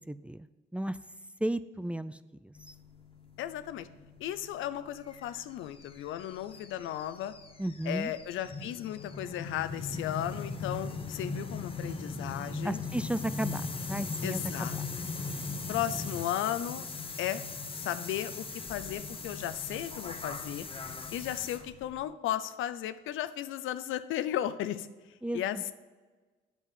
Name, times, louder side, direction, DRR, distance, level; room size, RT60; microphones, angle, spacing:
voice 1, 0.1-0.5 0.7-1.0 1.4-2.7 7.6-8.1 12.6-13.6 13.9-14.7 25.2-25.4, right 1 dB, 5° right, 12 dB, 0.4 m, -34 dB
sound 1, 2.6-22.0, left 4 dB, 25° left, 1.0 m, -40 dB
voice 2, 3.4-3.9 4.2-7.3 7.8-12.8 14.2-14.8 15.7-16.8 17.2-17.4 17.7-20.7 21.1-24.9 25.3-25.7, left 12 dB, 85° left, 12 dB, 0.6 m, -35 dB
8.2 x 7.2 x 5.6 m, 1.3 s
cardioid pair, 90°, 20 cm